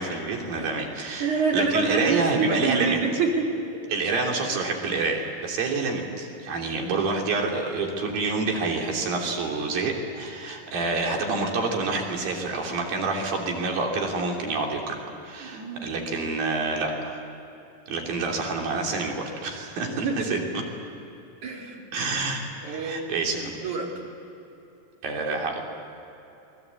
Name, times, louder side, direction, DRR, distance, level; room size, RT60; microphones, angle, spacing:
voice 1, 0.0-3.0 3.9-15.0 15.2-17.2 17.9-20.4 21.9-22.4 22.7-23.5 25.0-25.6, right 3 dB, 80° right, 1 dB, 4.8 m, -27 dB
voice 2, 1.2-3.6 15.4-15.9 18.2-18.3 20.0-20.4 21.4-21.9 22.6-23.0 23.4-23.9, right 4 dB, 60° right, -1 dB, 4.9 m, -27 dB
28.0 x 22.0 x 8.4 m, 2.9 s
omnidirectional pair, 4.0 m